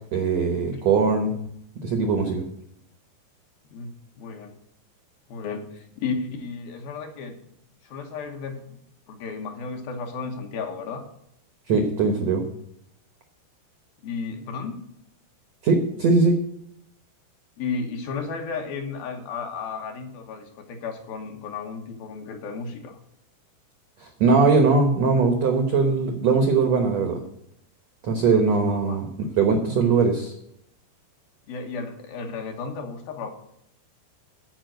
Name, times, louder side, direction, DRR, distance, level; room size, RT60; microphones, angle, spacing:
voice 1, 0.1-1.3 1.8-2.4 11.7-12.4 15.6-16.4 24.0-27.2 28.0-29.0 29.4-30.3, right 4 dB, 75° right, 5 dB, 1.5 m, -20 dB
voice 2, 3.7-4.5 5.3-7.4 7.8-8.8 9.1-11.0 14.0-14.8 17.6-23.0 28.3-29.0 29.8-30.0 31.5-33.3, left 5 dB, 65° left, 4 dB, 2.7 m, -34 dB
14.0 x 5.0 x 7.8 m, 0.74 s
omnidirectional pair, 4.9 m